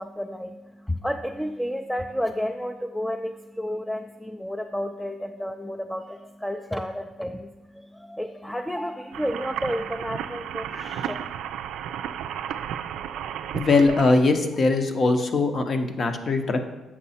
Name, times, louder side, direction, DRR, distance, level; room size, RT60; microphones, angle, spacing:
voice 1, 0.0-11.1, equal, 5° left, 5 dB, 0.3 m, -31 dB
sound 1, 9.1-14.1, right 9 dB, 85° right, 0.3 m, -33 dB
voice 2, 13.5-16.6, left 3 dB, 45° left, 6 dB, 0.8 m, -21 dB
7.4 x 5.5 x 4.2 m, 1.1 s
cardioid pair, 90°, 0 cm